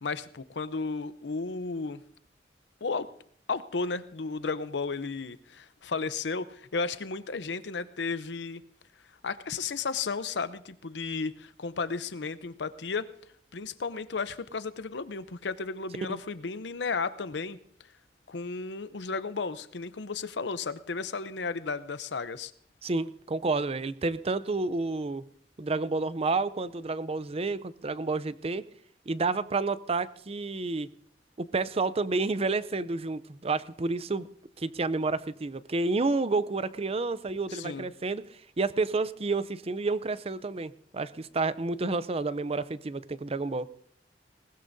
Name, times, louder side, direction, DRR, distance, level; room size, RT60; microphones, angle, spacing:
voice 1, 0.0-2.0 2.8-3.1 3.5-8.6 9.2-13.1 13.5-17.6 18.3-22.5 37.5-37.8, left 4 dB, 80° left, 13 dB, 0.7 m, -33 dB
voice 2, 22.8-25.2 25.6-28.6 29.1-30.9 31.4-34.3 34.6-38.2 38.6-43.7, right 3 dB, 35° right, 16 dB, 0.6 m, -30 dB
20.0 x 19.5 x 2.7 m, 0.63 s
head